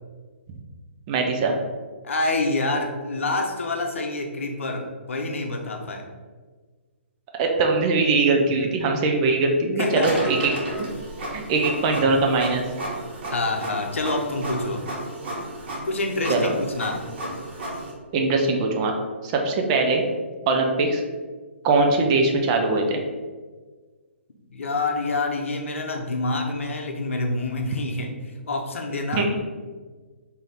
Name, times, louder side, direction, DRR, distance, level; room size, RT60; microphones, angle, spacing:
voice 1, 1.1-1.5 7.4-10.5 10.8-10.9 11.3-12.6 16.3-16.5 18.1-19.0 19.2-20.0 20.5-21.0 21.6-23.0 29.1-29.3, right 3 dB, 30° right, 2 dB, 0.5 m, -21 dB
voice 2, 2.0-6.1 9.8-10.2 13.3-14.8 15.8-17.0 24.5-28.1 28.5-29.3, left 2 dB, 80° left, 3 dB, 0.7 m, -27 dB
Printer, 10.0-17.9, right 1 dB, 55° right, 1.2 m, -33 dB
3.9 x 2.8 x 3.3 m, 1.4 s
hypercardioid pair, 145°, 7 cm